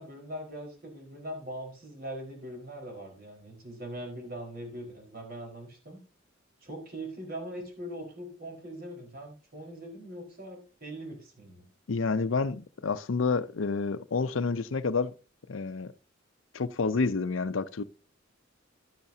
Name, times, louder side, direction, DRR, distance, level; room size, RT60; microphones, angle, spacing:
voice 1, 0.0-6.0 6.6-11.7, right 1 dB, 50° right, 4.6 m, -41 dB
voice 2, 11.9-15.1 15.5-15.9 16.5-17.8, left 4 dB, 80° left, 0.6 m, -29 dB
12.0 x 10.5 x 2.8 m
head